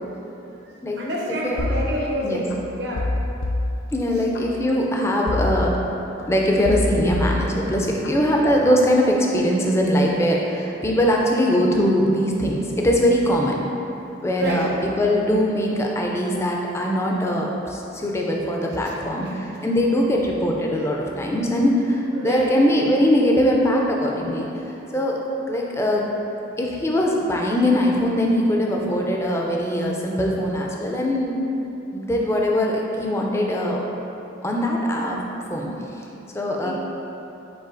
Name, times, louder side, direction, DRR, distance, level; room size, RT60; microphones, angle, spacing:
voice 1, 1.0-3.1 14.4-14.6 22.1-22.5 36.6-36.7, equal, 55° right, -4 dB, 0.7 m, -28 dB
sound 1, 1.6-2.5 2.9-4.4 5.3-6.2 6.6-8.1 8.5-8.9, left 1 dB, 75° left, 0.4 m, -27 dB
voice 2, 3.9-5.8 6.3-13.6 14.2-24.5 24.9-26.1 26.6-31.5 31.9-33.8 34.4-35.2 35.5-35.7 36.3-36.7, equal, 15° left, -1 dB, 0.3 m, -21 dB
5.4 x 3.9 x 2.5 m, 3.0 s
head